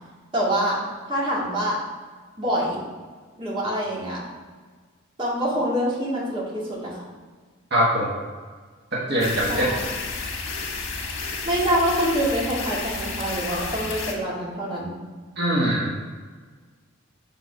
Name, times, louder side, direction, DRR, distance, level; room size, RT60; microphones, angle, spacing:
voice 1, 0.3-0.8 1.1-1.8 2.4-2.8 3.4-4.2 5.2-7.0 9.5-9.8 11.4-15.0, equal, 25° right, -7 dB, 2.1 m, -25 dB
voice 2, 7.7-8.2 8.9-9.7 15.4-15.9, equal, 55° right, -6 dB, 1.4 m, -22 dB
sound 1, 9.2-14.1, left 4 dB, 90° left, 1.3 m, -31 dB
6.2 x 4.4 x 5.4 m, 1.5 s
head